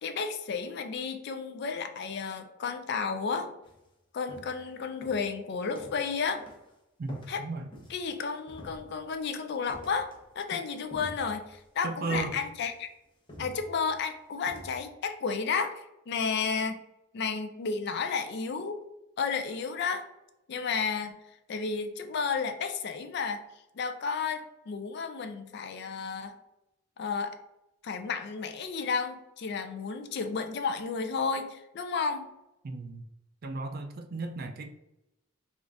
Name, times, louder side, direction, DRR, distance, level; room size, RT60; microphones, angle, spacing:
voice 1, 0.0-3.5 4.1-6.4 7.3-7.4 7.9-12.9 13.4-16.8 17.1-18.8 19.2-20.0 20.5-21.2 21.5-23.4 23.8-26.4 27.0-27.4 27.8-32.3, left 5 dB, 55° left, 7 dB, 0.4 m, -32 dB
sound 1, 3.6-3.8 4.3-4.7 5.0-6.1 6.4-6.7 7.1-8.1 8.5-9.2 9.7-10.3 10.6-11.6 12.1-12.9 13.3-14.0 14.5-14.8, left 1 dB, 25° left, 0.8 m, -47 dB
voice 2, 7.0-7.7 10.5-10.6 11.8-12.4 32.6-33.1 33.4-34.7, right 3 dB, 45° right, 6 dB, 0.4 m, -35 dB
3.8 x 2.4 x 3.4 m, 0.89 s
head